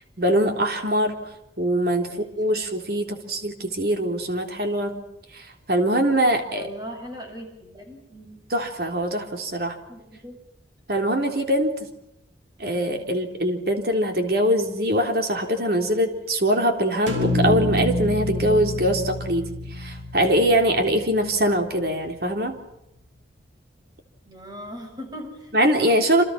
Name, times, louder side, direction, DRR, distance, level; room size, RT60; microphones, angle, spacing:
voice 1, 0.2-1.2 1.6-5.0 5.3-6.7 8.5-9.8 10.9-11.9 12.6-22.6 25.5-26.2, equal, 55° right, 4 dB, 3.7 m, -23 dB
voice 2, 6.6-8.4 9.9-10.4 24.3-25.5, equal, 20° right, 2 dB, 7.7 m, -39 dB
sound 1, 17.1-21.3, left 1 dB, 85° right, 5.0 m, -27 dB
28.0 x 27.5 x 5.9 m, 0.85 s
head